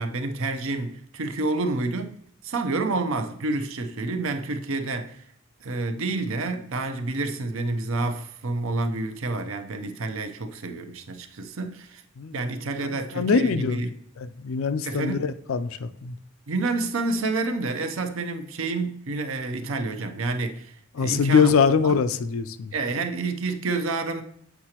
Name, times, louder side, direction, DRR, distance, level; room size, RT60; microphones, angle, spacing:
voice 1, 0.0-2.1 2.4-5.2 5.6-12.0 12.3-13.9 14.8-15.2 16.5-21.5 21.8-21.9 22.7-24.2, right 3 dB, 65° right, 0.6 m, -29 dB
voice 2, 12.8-13.8 14.2-16.2 21.0-22.7, left 5 dB, 70° left, 0.4 m, -23 dB
7.9 x 4.8 x 2.9 m
head